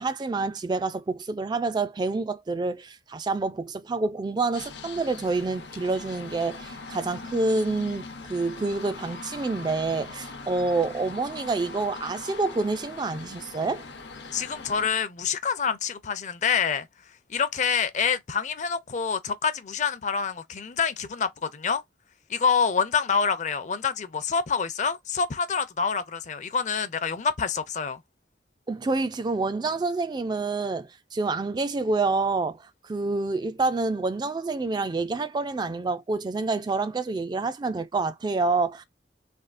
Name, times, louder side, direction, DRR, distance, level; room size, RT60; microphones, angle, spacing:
voice 1, 0.0-13.8 28.7-38.8, right 3 dB, 25° right, 0.3 m, -27 dB
sound 1, 4.5-14.9, left 3 dB, 75° left, 0.7 m, -41 dB
voice 2, 14.3-16.9 17.3-21.8 22.3-28.0, left 6 dB, 45° left, 0.5 m, -27 dB
3.5 x 2.3 x 2.4 m
head